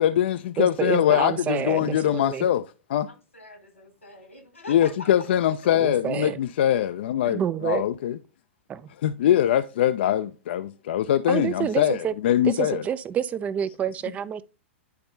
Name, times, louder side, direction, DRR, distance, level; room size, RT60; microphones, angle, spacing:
voice 1, 0.0-2.6 2.9-3.1 4.7-8.2 9.0-12.8, left 11 dB, 55° left, 0.4 m, -22 dB
voice 2, 0.6-2.5 5.7-6.4 7.2-7.9 8.7-8.9 11.3-12.1 12.4-14.4, right 9 dB, 20° right, 0.4 m, -28 dB
voice 3, 3.0-5.5, left 2 dB, 85° left, 1.6 m, -44 dB
10.5 x 4.3 x 2.6 m
figure-of-eight pair, 100°, 7 cm